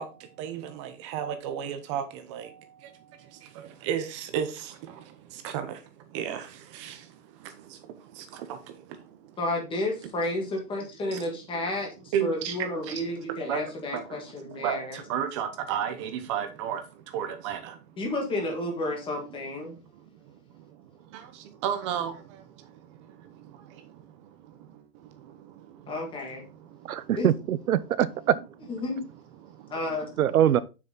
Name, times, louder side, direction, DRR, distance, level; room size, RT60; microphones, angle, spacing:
voice 1, 0.0-9.4 11.0-11.4 12.1-12.6 12.8-18.0 19.7-27.1 27.8-27.9 29.4-30.1, right 9 dB, 20° right, 0.8 m, -35 dB
voice 2, 9.4-15.0 18.0-19.7 25.9-26.4 27.1-27.3 28.7-29.0 29.7-30.1, left 2 dB, 10° left, 1.8 m, -31 dB
voice 3, 26.9-28.3 30.2-30.6, right 11 dB, 60° right, 0.8 m, -23 dB
7.4 x 6.2 x 3.9 m
hypercardioid pair, 155°, 48 cm